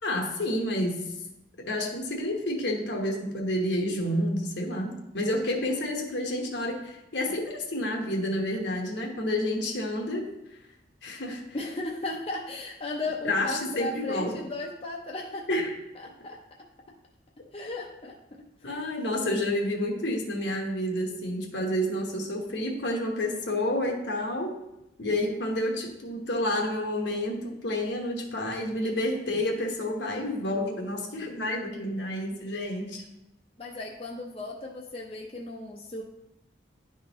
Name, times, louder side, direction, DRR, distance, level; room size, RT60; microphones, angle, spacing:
voice 1, 0.0-1.0 1.6-10.3 11.0-11.4 13.2-14.4 15.5-15.8 18.6-24.6 25.0-33.0, left 1 dB, 75° left, 1 dB, 1.1 m, -29 dB
voice 2, 11.5-15.5 16.0-16.4 17.5-18.1 18.6-18.9 33.6-36.0, left 2 dB, 30° left, -1 dB, 0.6 m, -35 dB
10.5 x 3.7 x 3.0 m, 0.89 s
head